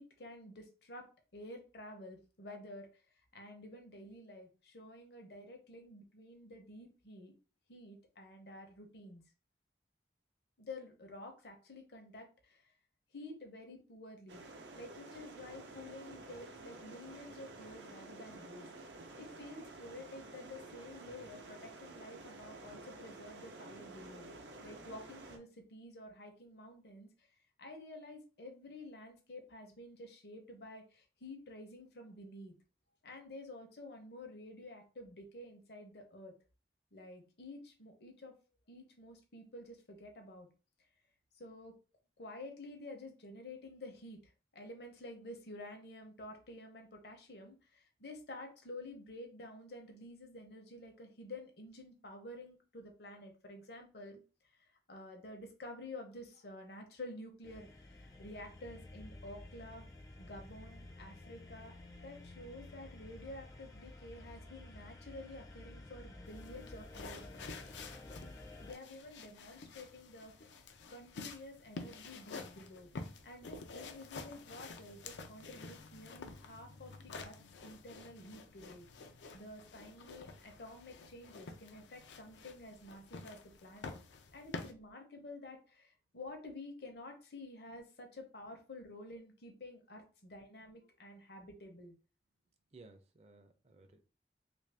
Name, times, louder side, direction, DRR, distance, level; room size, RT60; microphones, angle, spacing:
voice 1, 0.0-3.0 3.3-7.3 7.7-9.2 10.6-12.7 13.1-14.4 14.7-18.7 19.2-24.3 24.6-27.3 27.6-32.5 33.0-36.3 36.9-38.3 38.7-40.5 41.3-41.7 42.2-44.2 44.5-54.2 54.6-59.8 60.2-61.7 62.0-67.6 68.6-70.5 70.9-72.9 73.2-78.9 79.3-84.0 84.3-91.9, left 1 dB, 65° left, 4 dB, 0.8 m, -50 dB
sound 1, 14.3-25.4, right 2 dB, 80° right, 0.6 m, -51 dB
sound 2, 57.4-68.7, left 1 dB, 20° left, 0.4 m, -52 dB
sound 3, 66.3-84.7, left 3 dB, 85° left, 0.5 m, -49 dB
voice 2, 92.7-94.1, right 3 dB, 35° right, 6 dB, 0.5 m, -59 dB
3.1 x 2.6 x 3.3 m, 0.35 s
head